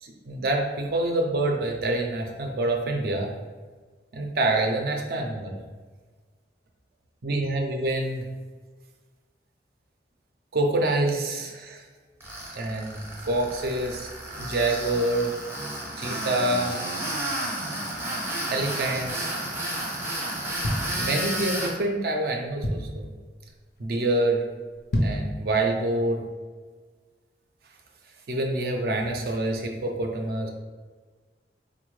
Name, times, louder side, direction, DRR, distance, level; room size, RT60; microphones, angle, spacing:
voice 1, 0.0-3.3 4.1-5.6 7.2-8.3 10.5-11.8 12.5-14.1 14.4-15.3 16.0-16.8 18.5-19.4 21.0-23.1 23.8-24.4 25.0-26.2 28.3-30.5, right 2 dB, 55° right, 2 dB, 0.4 m, -26 dB
Tools, 12.2-21.7, right 1 dB, 15° right, 0.6 m, -32 dB
sound 1, 20.6-21.6 22.1-22.2 22.3-23.1 23.6-23.8 24.1-24.2 24.7-25.4 25.8-25.9, equal, 65° left, 0.5 m, -28 dB
4.1 x 2.1 x 3.0 m, 1.4 s
head